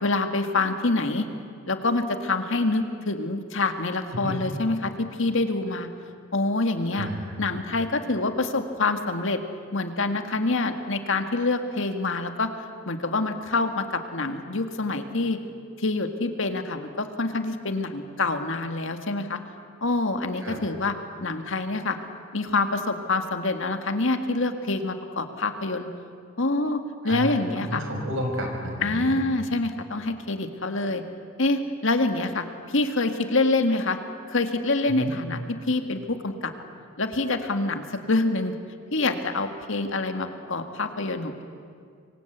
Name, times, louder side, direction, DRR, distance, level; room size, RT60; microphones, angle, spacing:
voice 1, 0.0-1.3 1.7-5.9 6.3-7.1 7.4-9.4 9.7-12.5 12.9-15.4 15.8-19.4 19.8-20.9 21.2-22.0 22.3-25.9 26.4-26.8 27.0-27.8 28.8-31.0 31.4-34.0 34.3-36.5 37.0-38.5 38.9-41.4, left 2 dB, 65° left, 7 dB, 2.0 m, -26 dB
voice 2, 6.9-7.4 20.4-20.6 27.0-29.2 34.9-35.1, equal, 70° right, 2 dB, 6.2 m, -31 dB
27.0 x 24.0 x 8.2 m, 2.2 s
head